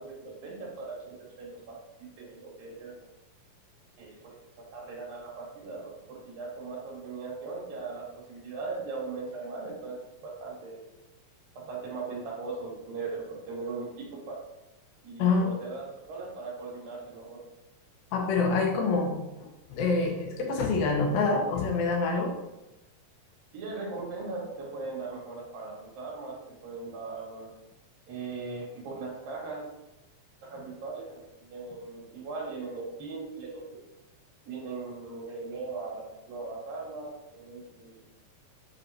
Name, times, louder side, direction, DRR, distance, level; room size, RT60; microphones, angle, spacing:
voice 1, 0.0-3.0 4.0-10.0 10.2-10.8 11.7-14.4 15.0-17.4 23.5-27.5 28.1-29.7 30.4-33.8 34.5-38.0, right 3 dB, 80° right, -3 dB, 3.4 m, -39 dB
voice 2, 15.2-15.5 18.1-22.3, left 4 dB, 85° left, 1 dB, 2.9 m, -26 dB
7.0 x 5.5 x 2.9 m, 0.95 s
omnidirectional pair, 4.0 m